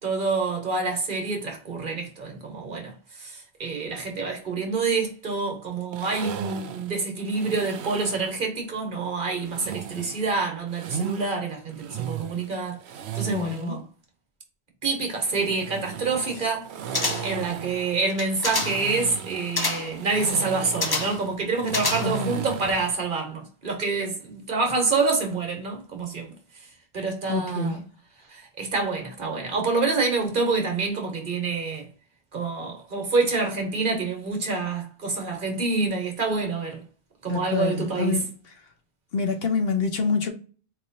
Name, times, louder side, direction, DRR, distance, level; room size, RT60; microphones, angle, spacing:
voice 1, 0.0-12.8 13.1-13.8 14.8-16.7 16.9-26.3 26.9-27.8 28.3-31.9 32.3-36.8 37.2-38.2, right 4 dB, 50° right, 1.2 m, -27 dB
sound 1, 5.9-8.3 9.4-11.2 11.7-13.7 15.1-23.0, right 8 dB, 80° right, 0.8 m, -35 dB
voice 2, 13.2-13.8 22.0-22.4 27.3-27.8 37.3-38.3 39.1-40.3, left 5 dB, 65° left, 1.0 m, -27 dB
sound 2, 16.9-17.5 18.1-18.9 19.6-20.0 20.8-21.3 21.7-22.3 22.7-22.8, left 3 dB, 30° left, 0.5 m, -28 dB
4.4 x 3.0 x 2.6 m
omnidirectional pair, 1.1 m